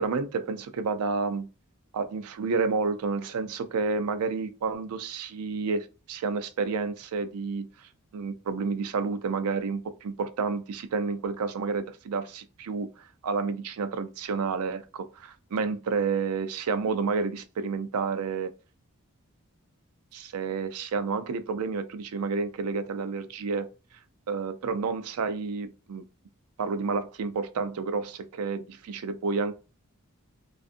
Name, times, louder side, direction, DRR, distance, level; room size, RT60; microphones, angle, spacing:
voice 1, 0.0-1.5 1.9-7.7 8.1-18.5 20.1-23.7 24.3-26.0 26.6-29.5, right 4 dB, 80° right, 0.4 m, -30 dB
2.5 x 2.4 x 2.4 m
head